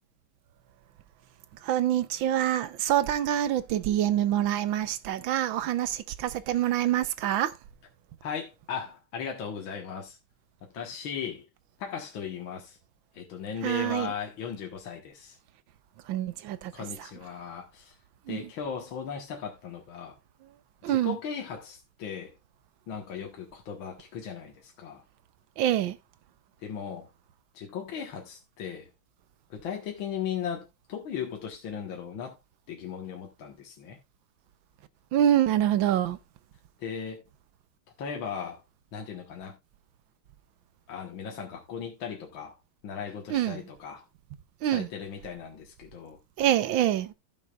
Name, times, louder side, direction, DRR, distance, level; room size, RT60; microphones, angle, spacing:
voice 1, 1.5-7.6 13.6-14.1 16.0-17.1 18.3-18.5 20.4-20.5 20.8-21.2 25.6-26.0 35.1-36.2 43.3-43.7 44.6-44.9 46.4-47.1, right 12 dB, 75° right, 1.4 m, -26 dB
voice 2, 8.2-10.2 10.7-11.5 11.8-12.8 13.1-15.4 16.7-17.9 18.3-20.2 20.9-22.3 22.9-25.0 26.6-27.1 27.5-28.9 29.5-32.4 32.7-34.0 36.8-37.2 38.0-38.6 38.9-39.6 40.9-42.6 42.8-44.0 44.7-46.2, left 7 dB, 70° left, 2.2 m, -37 dB
15.5 x 6.5 x 2.4 m
omnidirectional pair, 2.3 m